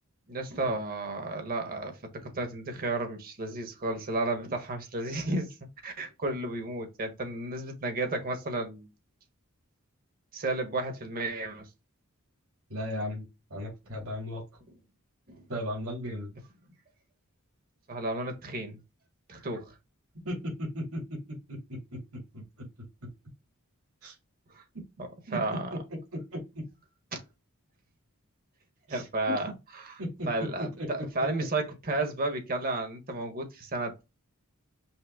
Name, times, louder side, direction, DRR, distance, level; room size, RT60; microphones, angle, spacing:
voice 1, 0.3-5.5 5.8-8.9 10.3-11.7 15.3-15.4 17.9-18.8 19.3-19.7 24.5-24.6 25.3-25.7 27.1-27.2 28.9-29.5 29.8-29.9 30.3-34.1, right 2 dB, 40° right, 1.1 m, -32 dB
voice 2, 12.7-14.4 15.5-16.3 19.4-19.5 20.2-22.7 24.0-24.1 25.3-25.8 26.1-26.6 28.9-29.1 30.0-30.3 30.6-31.4, equal, 70° right, 2.3 m, -36 dB
5.6 x 2.1 x 3.6 m
head